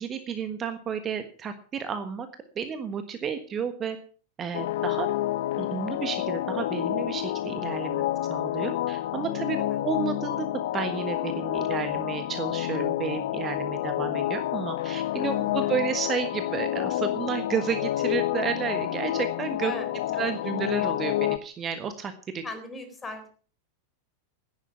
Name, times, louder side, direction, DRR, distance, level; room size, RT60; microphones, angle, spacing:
voice 1, 0.0-2.3 2.5-4.0 4.4-5.1 5.6-8.0 8.3-9.6 9.8-10.5 10.7-19.7 20.2-22.4, right 7 dB, 25° right, 9 dB, 1.4 m, -31 dB
sound 1, 4.5-21.4, left 14 dB, 55° left, 0.8 m, -29 dB
voice 2, 15.2-15.5 19.6-20.5 22.4-23.3, left 2 dB, 15° left, 9 dB, 4.1 m, -40 dB
15.0 x 10.5 x 5.8 m, 0.43 s
figure-of-eight pair, 90°, 0 cm